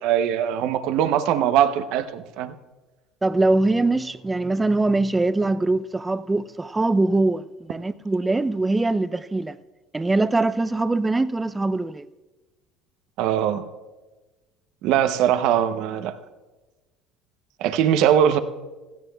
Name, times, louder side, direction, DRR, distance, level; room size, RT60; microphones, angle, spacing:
voice 1, 0.0-2.5 13.2-13.6 14.8-16.2 17.6-18.4, right 10 dB, 65° right, 0.7 m, -21 dB
voice 2, 3.2-9.6 9.9-12.1, right 2 dB, 15° right, 0.5 m, -22 dB
16.5 x 15.5 x 2.3 m
hypercardioid pair, 75°, 0 cm